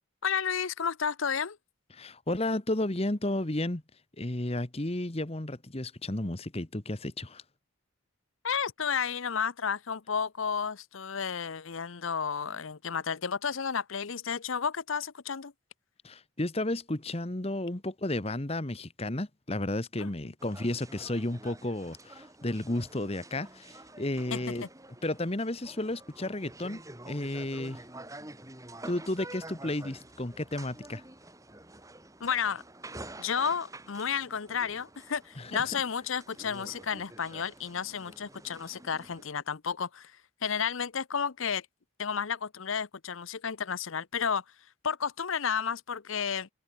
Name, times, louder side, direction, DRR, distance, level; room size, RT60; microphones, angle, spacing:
voice 1, 0.2-1.6 8.4-15.5 20.0-20.3 24.3-24.7 32.2-32.6 33.2-40.1 40.4-41.7 42.0-44.4 44.8-46.5, left 6 dB, 70° left, 0.8 m, -32 dB
voice 2, 1.9-3.8 4.2-7.4 16.0-24.6 25.0-27.8 28.8-31.0 35.4-35.7, left 1 dB, 30° left, 1.2 m, -33 dB
sound 1, 20.4-39.3, right 2 dB, 15° right, 3.6 m, -48 dB
open air
head